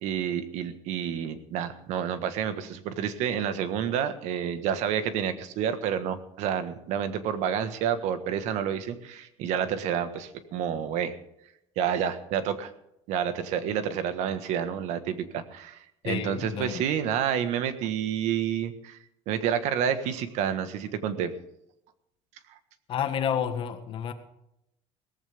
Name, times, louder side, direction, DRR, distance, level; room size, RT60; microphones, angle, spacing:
voice 1, 0.0-11.1 11.7-12.7 13.1-19.0 19.3-21.3, right 8 dB, 65° right, 1.5 m, -29 dB
voice 2, 16.0-16.8 22.9-24.1, left 8 dB, 45° left, 1.6 m, -30 dB
18.0 x 15.0 x 3.6 m
cardioid pair, 165°, 13 cm